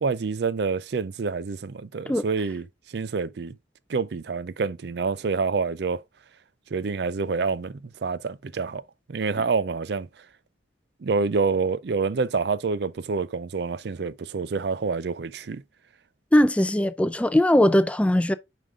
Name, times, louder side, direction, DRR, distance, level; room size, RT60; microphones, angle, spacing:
voice 1, 0.0-3.6 3.9-6.0 6.7-8.8 9.1-10.1 11.0-15.6, right 4 dB, 60° right, 0.4 m, -27 dB
voice 2, 16.3-18.3, left 1 dB, 5° left, 0.3 m, -20 dB
7.4 x 5.1 x 3.6 m
head